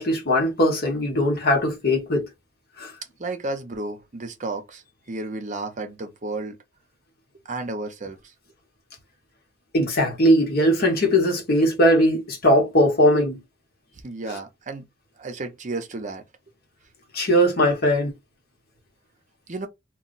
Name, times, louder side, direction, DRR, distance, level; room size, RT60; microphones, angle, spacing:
voice 1, 0.0-2.3 2.8-2.9 9.7-13.4 17.1-18.1, equal, 55° left, 1.1 m, -20 dB
voice 2, 3.2-6.6 7.3-8.3 14.0-14.9 15.2-16.2 19.5-19.7, right 2 dB, 40° right, 0.6 m, -32 dB
2.3 x 2.2 x 3.8 m
head